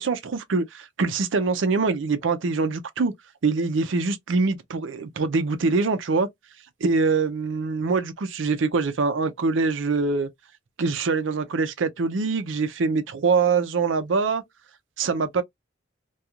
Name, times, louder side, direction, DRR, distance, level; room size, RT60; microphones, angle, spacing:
voice 1, 0.0-3.1 3.4-6.3 6.8-10.3 10.8-14.4 15.0-15.4, right 4 dB, 75° right, 0.5 m, -24 dB
2.4 x 2.3 x 2.8 m
head